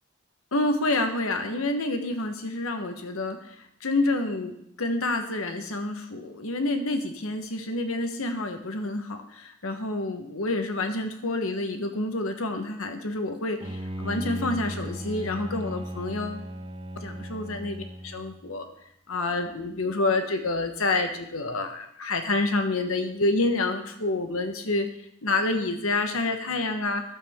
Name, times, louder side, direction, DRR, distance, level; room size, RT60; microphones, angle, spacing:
voice 1, 0.5-3.4 3.8-16.4 17.0-18.6 19.1-24.9 25.2-27.0, left 2 dB, 75° left, 6 dB, 1.1 m, -28 dB
Bowed string instrument, 13.6-18.5, equal, 25° right, 0.5 m, -36 dB
12.0 x 7.4 x 3.6 m, 0.74 s
head